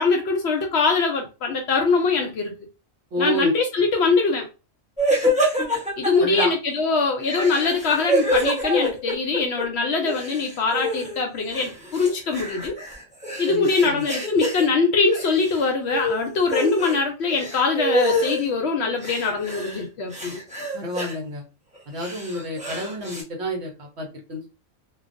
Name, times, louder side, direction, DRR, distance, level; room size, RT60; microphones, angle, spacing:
voice 1, 0.0-2.6 3.2-4.5 6.0-12.7 13.4-20.4, left 4 dB, 65° left, 0.7 m, -22 dB
voice 2, 3.1-3.5 6.2-6.5 13.5-14.0 20.7-21.4 21.9-24.5, equal, 60° right, 1.0 m, -29 dB
sound 1, 5.0-6.4 7.2-9.6 9.9-11.2 11.5-14.6 15.1-15.6 15.9-17.0 17.3-18.4 19.0-19.8 20.1-21.1 21.7-23.2, equal, 5° right, 0.8 m, -26 dB
2.5 x 2.2 x 2.5 m
omnidirectional pair, 1.4 m